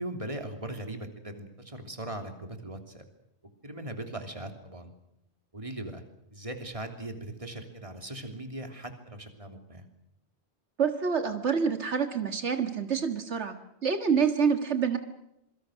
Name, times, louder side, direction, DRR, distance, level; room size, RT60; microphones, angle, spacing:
voice 1, 0.0-3.1 3.6-4.9 5.5-6.0 6.3-9.9, right 1 dB, 30° right, 5 dB, 3.2 m, -39 dB
voice 2, 10.8-13.5 13.8-15.0, right 6 dB, 85° right, 7 dB, 2.0 m, -27 dB
27.0 x 23.5 x 6.4 m, 0.83 s
omnidirectional pair, 1.1 m